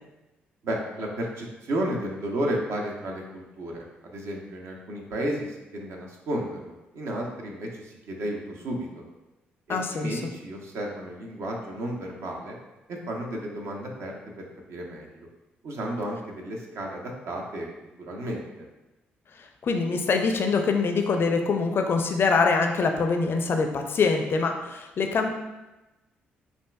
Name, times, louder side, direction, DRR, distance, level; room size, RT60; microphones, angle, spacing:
voice 1, 0.6-9.0 9.7-12.6 12.9-14.1 14.7-15.3 15.6-17.7 18.1-18.7, right 1 dB, 55° right, 0 dB, 0.7 m, -33 dB
voice 2, 9.7-10.2 19.6-25.3, left 4 dB, 45° left, 4 dB, 0.4 m, -24 dB
5.3 x 2.5 x 2.2 m, 1.0 s
figure-of-eight pair, 40°, 5 cm